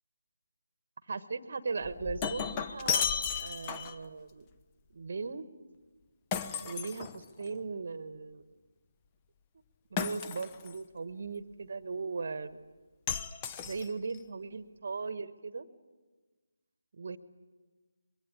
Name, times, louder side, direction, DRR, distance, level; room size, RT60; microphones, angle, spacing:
voice 1, 1.1-3.0 3.4-4.4 4.9-5.5 6.6-8.4 9.9-12.6 13.6-15.7 17.0-17.2, right 4 dB, 45° right, 13 dB, 1.2 m, -38 dB
Shatter, 1.8-4.1 6.3-7.6 10.0-10.8 13.1-14.2, left 7 dB, 20° left, 0.8 m, -34 dB
24.5 x 22.5 x 8.5 m, 1.3 s
figure-of-eight pair, 150°, 0 cm